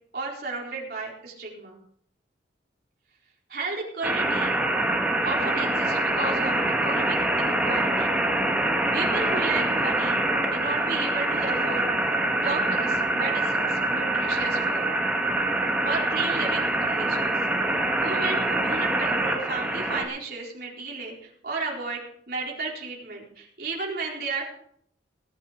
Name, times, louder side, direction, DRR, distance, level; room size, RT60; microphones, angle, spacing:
voice 1, 0.1-1.8 3.5-4.5 5.2-8.1 8.9-10.2 10.5-11.9 12.4-14.9 15.8-17.4 18.0-24.4, right 3 dB, 55° right, -3 dB, 4.4 m, -33 dB
sound 1, 4.0-20.0, right 2 dB, 5° right, 1.6 m, -25 dB
19.0 x 9.4 x 5.1 m, 0.66 s
head